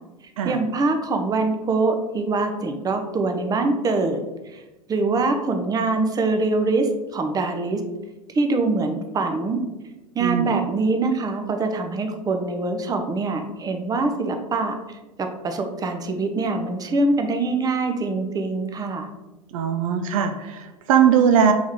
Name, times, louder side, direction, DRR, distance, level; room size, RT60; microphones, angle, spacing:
voice 1, 0.4-4.6 4.9-7.8 8.3-9.6 10.1-19.1, right 3 dB, 20° right, 5 dB, 0.5 m, -24 dB
voice 2, 10.2-10.6 19.5-21.5, right 7 dB, 65° right, 7 dB, 0.4 m, -20 dB
3.5 x 3.0 x 3.6 m, 1.1 s
hypercardioid pair, 85°, 18 cm